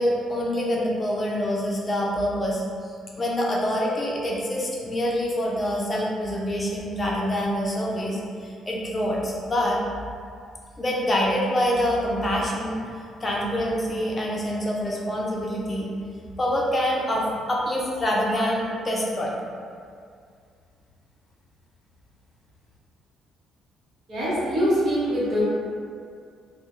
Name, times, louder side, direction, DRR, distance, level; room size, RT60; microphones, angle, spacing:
voice 1, 0.0-2.6 3.2-9.8 10.8-12.9 13.2-15.9 16.4-19.3, equal, 25° left, -4 dB, 0.5 m, -25 dB
voice 2, 24.1-25.4, equal, 55° right, -10 dB, 0.8 m, -23 dB
2.2 x 2.0 x 2.9 m, 2.2 s
cardioid pair, 95°, 0 cm